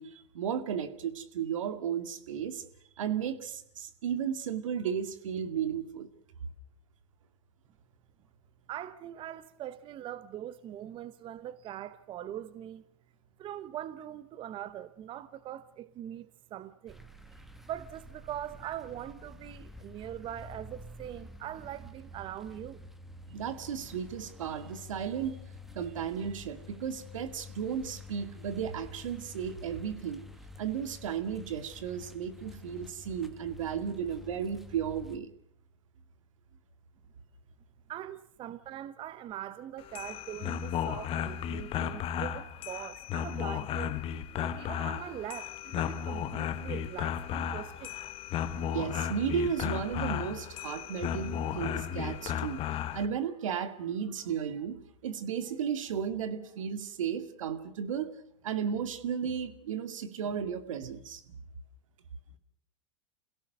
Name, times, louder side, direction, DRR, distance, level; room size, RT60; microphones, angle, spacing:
voice 1, 0.0-2.6 3.0-6.1 23.3-25.4 25.7-30.2 30.6-35.3 48.6-52.6 52.9-58.1 58.4-61.2, right 8 dB, 75° right, 2.2 m, -34 dB
voice 2, 8.7-12.8 13.4-17.0 17.6-22.8 37.9-43.9 44.4-48.0, right 11 dB, 30° right, 0.9 m, -42 dB
sound 1, 16.9-35.2, left 3 dB, ahead, 1.5 m, -49 dB
sound 2, 39.8-53.1, left 9 dB, 35° left, 1.3 m, -34 dB
28.0 x 17.0 x 6.7 m
hypercardioid pair, 120°, 17 cm